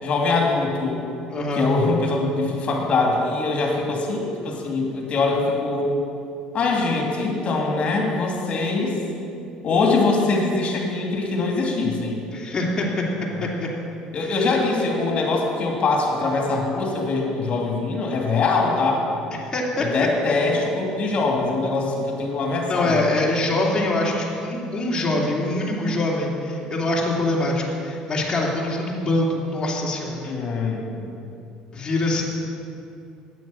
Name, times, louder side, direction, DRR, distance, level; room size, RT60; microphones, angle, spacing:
voice 1, 0.0-1.1 1.5-5.9 6.5-9.0 9.6-12.2 14.1-19.0 19.8-23.0 30.2-31.2, left 3 dB, 50° left, 0 dB, 2.7 m, -23 dB
voice 2, 1.3-1.7 12.3-13.1 13.4-13.7 14.1-14.5 19.4-19.9 22.7-30.3 31.7-32.2, left 2 dB, 30° left, -4 dB, 2.9 m, -24 dB
9.3 x 8.9 x 7.2 m, 2.6 s
supercardioid pair, 80°, 3 cm